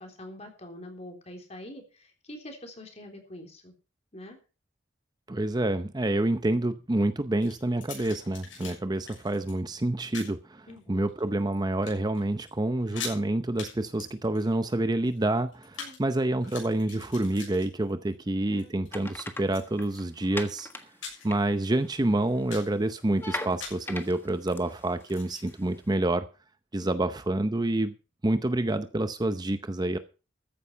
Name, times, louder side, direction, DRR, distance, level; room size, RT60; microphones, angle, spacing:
voice 1, 0.0-3.7 4.1-4.4 10.7-11.1 15.8-16.0 18.5-18.7 26.8-27.1, left 1 dB, 35° left, 4 dB, 3.6 m, -45 dB
voice 2, 5.3-20.7 21.2-26.2 26.7-27.9 28.2-30.0, right 1 dB, 20° right, 11 dB, 0.6 m, -28 dB
sound 1, 7.4-8.8 9.1-9.5 10.1-10.4 11.0-11.5 11.8-12.2 12.5-12.6 12.8-13.2 13.6-13.7 14.0-16.0 16.3-18.1 18.5-18.9 19.5-20.3 20.7-21.4 21.8-21.9 22.3-22.8 23.6-23.9 25.0-25.5, left 6 dB, 85° left, 7.0 m, -42 dB
sound 2, 18.9-20.8 21.2-22.1 22.4-25.7, left 2 dB, 10° left, 1.5 m, -39 dB
14.0 x 9.6 x 5.5 m, 0.34 s
head